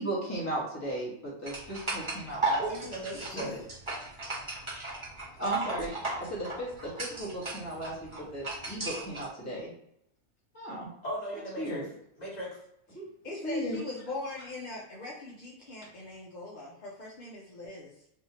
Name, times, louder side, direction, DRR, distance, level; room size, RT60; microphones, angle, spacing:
voice 1, 0.0-2.6 3.3-3.6 5.4-5.9 6.2-9.7 10.5-10.9 11.6-11.8 12.9-13.0 13.4-13.8, right 1 dB, 10° left, -7 dB, 1.3 m, -35 dB
sound 1, 1.5-9.3, right 2 dB, 25° right, 0.9 m, -36 dB
voice 2, 2.6-3.6 11.0-11.8 12.2-12.5, right 1 dB, 30° left, -7 dB, 1.7 m, -37 dB
voice 3, 13.2-17.9, left 2 dB, 50° left, -4 dB, 0.6 m, -41 dB
3.5 x 2.8 x 2.9 m, 0.73 s
omnidirectional pair, 1.5 m